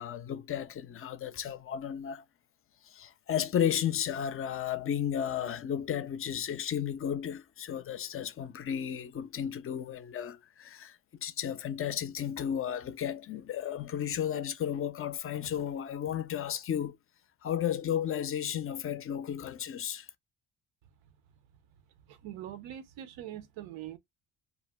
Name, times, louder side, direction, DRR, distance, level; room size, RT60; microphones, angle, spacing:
voice 1, 0.0-2.2 2.8-17.0 17.4-20.1, left 9 dB, 30° left, 0.4 m, -33 dB
voice 2, 22.1-24.0, right 11 dB, 90° right, 0.7 m, -43 dB
2.5 x 2.1 x 3.2 m
cardioid pair, 90°, 44 cm